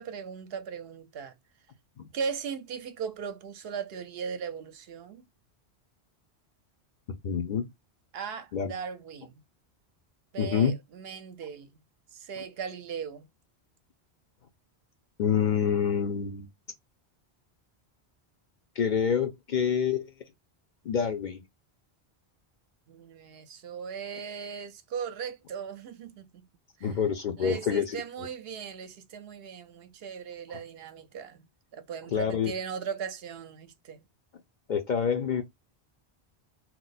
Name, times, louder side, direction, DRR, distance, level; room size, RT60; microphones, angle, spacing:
voice 1, 0.0-1.3 2.1-5.2 8.1-9.4 10.3-11.8 12.1-13.3 22.9-26.5 26.8-27.0 27.4-34.0, right 6 dB, 70° right, 0.8 m, -38 dB
voice 2, 7.2-7.7 8.5-8.7 10.4-10.7 15.2-16.5 18.8-20.1 20.9-21.4 26.8-28.0 32.1-32.5 34.7-35.4, left 7 dB, 55° left, 0.6 m, -27 dB
2.9 x 2.0 x 3.9 m
omnidirectional pair, 1.1 m